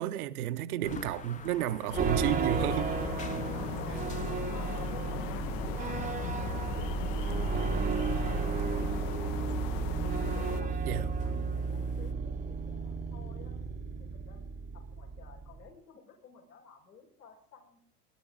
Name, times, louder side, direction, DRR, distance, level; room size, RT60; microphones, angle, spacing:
voice 1, 0.0-2.9 10.9-11.1, right 13 dB, 65° right, 0.9 m, -32 dB
sound 1, 0.8-12.1, left 6 dB, 15° left, 0.7 m, -49 dB
sound 2, 1.9-10.6, left 11 dB, 50° left, 0.9 m, -38 dB
sound 3, 2.0-15.7, right 5 dB, 15° right, 0.8 m, -33 dB
voice 2, 3.5-4.1 4.5-5.7 9.3-9.9 10.2-13.6 14.0-14.5 14.7-17.8, left 6 dB, 85° left, 5.3 m, -54 dB
20.5 x 11.5 x 3.8 m
hypercardioid pair, 110°, 48 cm